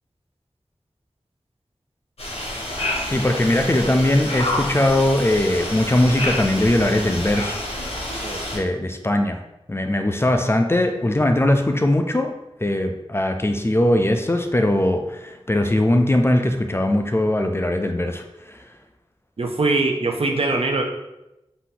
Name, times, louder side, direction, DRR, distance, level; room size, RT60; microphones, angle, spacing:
sound 1, 2.2-8.6, left 1 dB, 90° left, 1.1 m, -28 dB
voice 1, 3.1-7.6 8.5-9.4 9.7-12.3 12.6-18.6, left 1 dB, 25° left, 5 dB, 0.4 m, -20 dB
voice 2, 19.4-20.8, right 3 dB, 70° right, 3 dB, 0.6 m, -22 dB
4.0 x 2.7 x 3.8 m, 0.94 s
wide cardioid pair, 55°, 10 cm